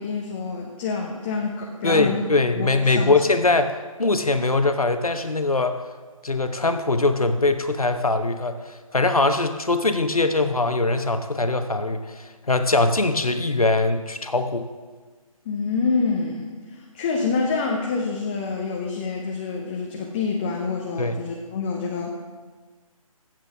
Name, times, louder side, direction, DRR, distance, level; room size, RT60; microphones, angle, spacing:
voice 1, 0.0-3.2 15.5-22.2, left 4 dB, 20° left, 0 dB, 0.7 m, -27 dB
voice 2, 1.8-5.7 6.2-14.7 21.0-21.2, left 2 dB, 80° left, 8 dB, 1.0 m, -22 dB
15.0 x 7.7 x 3.5 m, 1.4 s
figure-of-eight pair, 145°, 18 cm